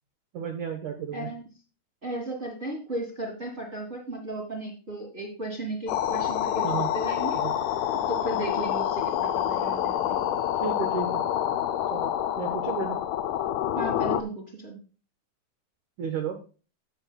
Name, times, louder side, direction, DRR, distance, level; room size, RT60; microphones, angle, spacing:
voice 1, 0.3-1.3 6.6-6.9 7.3-7.5 10.6-11.3 11.9-13.0 16.0-16.4, right 6 dB, 75° right, 4 dB, 1.8 m, -33 dB
voice 2, 1.1-1.4 2.0-7.4 7.9-10.2 13.7-14.8, right 1 dB, 40° right, -1 dB, 0.9 m, -35 dB
sound 1, 5.9-14.2, left 11 dB, 80° left, 2.4 m, -27 dB
12.0 x 8.3 x 2.2 m, 0.35 s
omnidirectional pair, 4.9 m